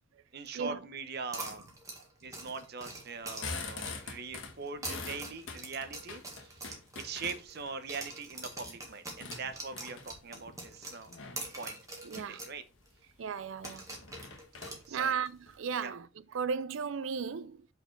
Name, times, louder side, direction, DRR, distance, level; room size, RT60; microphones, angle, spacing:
voice 1, 0.3-1.7 2.2-11.1 11.6-11.8 12.1-12.6 14.9-15.2 15.7-15.9, right 4 dB, 55° right, 0.8 m, -42 dB
sound 1, 1.3-4.2 4.7-7.6 7.9-12.6 12.8-12.9 13.6-15.3, right 2 dB, 20° right, 1.6 m, -44 dB
sound 2, 3.1-7.7 8.2-10.3 11.1-11.5 12.0-12.3 12.7-12.8 13.1-13.2 13.6-15.6, left 4 dB, 85° left, 1.4 m, -44 dB
voice 2, 12.0-12.4 13.2-13.9 14.9-17.7, right 6 dB, 90° right, 0.5 m, -35 dB
5.6 x 4.4 x 4.5 m
head